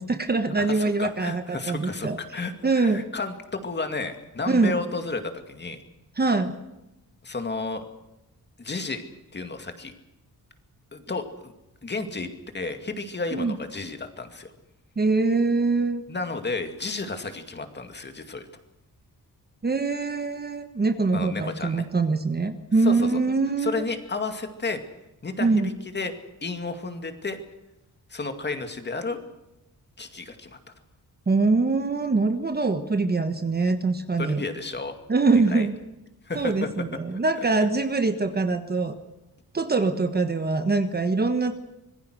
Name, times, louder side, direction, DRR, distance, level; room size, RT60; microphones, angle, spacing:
voice 1, 0.0-3.0 4.5-4.8 6.2-6.6 13.3-13.6 15.0-16.0 19.6-23.9 25.4-25.7 31.3-34.4 35.1-35.7 36.3-38.9 39.5-41.6, right 3 dB, 25° right, 8 dB, 1.3 m, -24 dB
voice 2, 0.5-5.8 7.2-7.8 8.6-9.0 9.3-9.9 10.9-11.5 11.8-14.5 16.1-18.5 21.1-21.8 22.8-23.1 23.6-24.8 25.2-26.1 26.4-27.4 28.1-29.2 30.0-30.6 34.2-35.0 35.5-35.7 36.3-36.7 37.1-37.2, left 3 dB, 30° left, 7 dB, 2.3 m, -32 dB
25.5 x 21.0 x 6.4 m, 0.93 s
wide cardioid pair, 165°, 37 cm